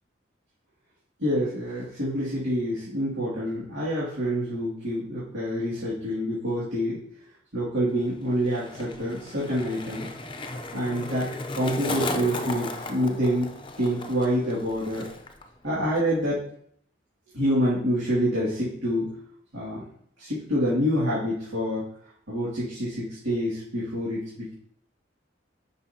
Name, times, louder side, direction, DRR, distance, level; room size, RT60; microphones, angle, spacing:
voice 1, 1.2-7.0 7.5-10.1 10.7-13.5 13.8-15.0 15.6-16.4 17.3-19.1 19.5-19.8 20.2-21.8 22.3-24.5, equal, 75° right, -11 dB, 2.5 m, -27 dB
Skateboard, 7.9-15.5 15.7-16.2, left 2 dB, 25° left, 0.6 m, -36 dB
9.8 x 5.5 x 2.9 m, 0.68 s
head